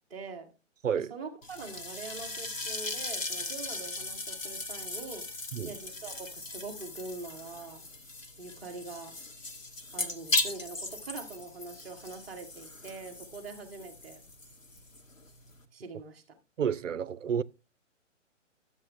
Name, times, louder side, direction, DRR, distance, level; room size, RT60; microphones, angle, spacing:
voice 1, 0.1-0.5 0.9-5.3 5.6-7.9 8.4-9.2 9.9-14.2 15.7-16.4, right 3 dB, ahead, 0.5 m, -43 dB
sound 1, 1.4-15.7, left 2 dB, 80° left, 1.4 m, -38 dB
voice 2, 16.6-17.4, right 8 dB, 75° right, 0.5 m, -30 dB
11.0 x 7.2 x 3.3 m
figure-of-eight pair, 125°, 38 cm